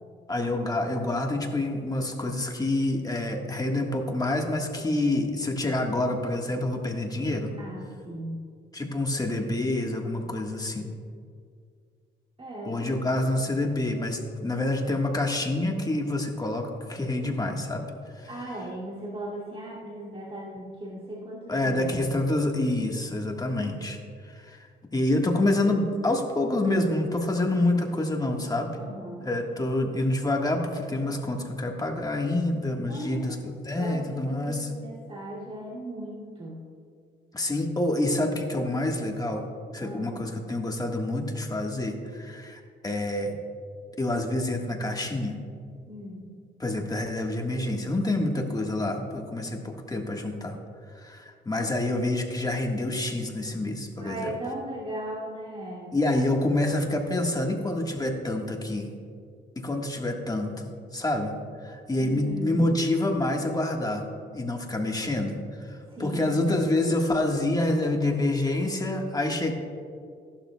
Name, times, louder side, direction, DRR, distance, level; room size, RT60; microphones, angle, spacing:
voice 1, 0.3-7.5 8.7-10.9 12.6-17.9 18.1-18.3 21.5-24.0 24.2-24.6 24.9-28.7 29.2-34.7 37.3-39.5 39.7-43.4 44.0-45.4 46.6-50.6 50.9-54.3 55.9-58.9 59.5-61.3 61.6-64.0 64.3-69.5, left 1 dB, 20° left, 1 dB, 1.5 m, -27 dB
voice 2, 7.6-8.4 12.4-12.8 18.3-22.3 28.8-29.3 32.9-33.5 33.8-36.6 39.8-40.2 45.9-46.3 54.0-56.0 62.0-62.7 65.7-66.4, equal, 30° right, -6 dB, 2.6 m, -37 dB
16.0 x 12.0 x 2.3 m, 2.3 s
cardioid pair, 90°, 20 cm